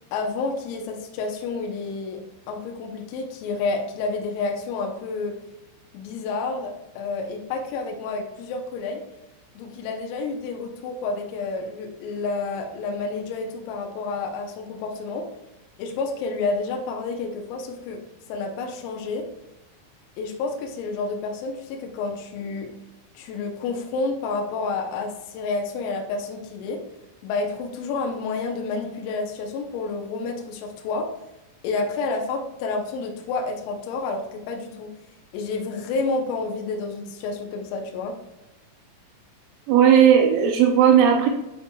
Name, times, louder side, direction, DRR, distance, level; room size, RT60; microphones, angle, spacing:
voice 1, 0.1-2.2 2.5-5.4 5.9-9.0 9.6-15.3 15.8-18.0 18.3-19.3 20.2-22.7 23.2-26.8 27.2-31.1 31.6-34.9 35.3-38.2, left 3 dB, 85° left, 1 dB, 3.5 m, -29 dB
voice 2, 39.7-41.3, right 8 dB, 80° right, 3 dB, 2.8 m, -16 dB
9.7 x 4.4 x 2.2 m, 0.94 s
omnidirectional pair, 6.0 m